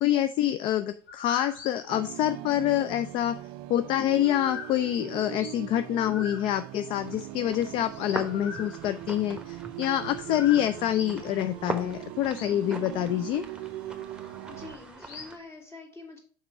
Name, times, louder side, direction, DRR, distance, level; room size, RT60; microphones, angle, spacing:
voice 1, 0.0-3.4 3.7-13.4, left 12 dB, 45° left, 12 dB, 0.4 m, -26 dB
sound 1, 1.1-3.0 3.4-5.7 6.0-9.3 9.7-9.8 10.2-11.2 11.6-12.7 12.9-13.4 14.1-14.3 15.0-15.4, left 4 dB, 60° left, 1.3 m, -43 dB
sound 2, 1.9-14.8, right 15 dB, 50° right, 0.4 m, -41 dB
sound 3, 7.0-15.4, right 2 dB, 5° right, 1.1 m, -42 dB
voice 2, 14.5-16.2, left 3 dB, 20° left, 2 dB, 2.2 m, -45 dB
5.8 x 4.2 x 4.7 m, 0.44 s
hypercardioid pair, 75°, 12 cm